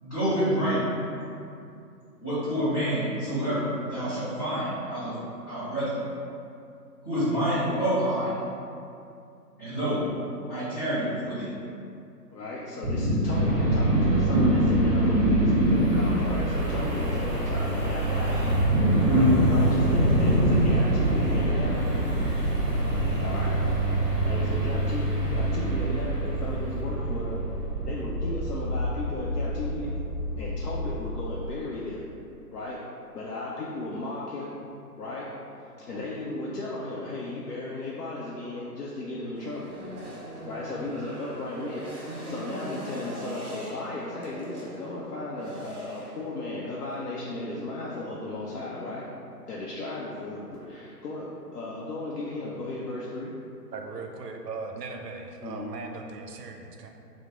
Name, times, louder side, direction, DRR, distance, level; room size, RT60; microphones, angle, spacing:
voice 1, 0.0-0.9 2.2-5.2 5.5-6.0 7.0-8.3 9.6-10.0 10.5-11.5 12.9-13.5 13.9-14.4 15.2-15.6 15.9-16.0 18.3-19.3, right 1 dB, 15° left, -19 dB, 0.6 m, -26 dB
voice 2, 12.3-15.4 15.7-18.5 19.1-22.0 23.2-23.6 24.2-27.4 27.8-30.0 30.4-32.1 32.5-32.8 33.1-34.6 35.0-35.3 35.9-39.8 40.4-49.0 49.5-53.3 55.4-55.7, left 2 dB, 70° left, -6 dB, 0.6 m, -35 dB
sound 1, 13.3-31.3, right 2 dB, 10° right, 1.2 m, -28 dB
Wind, 15.7-26.0, equal, 25° right, 0.6 m, -29 dB
sound 2, 39.3-47.4, right 1 dB, 45° right, 1.0 m, -41 dB
voice 3, 53.7-56.9, right 4 dB, 75° right, 3 dB, 0.6 m, -38 dB
3.0 x 2.0 x 3.5 m, 2.6 s
figure-of-eight pair, 135°, 48 cm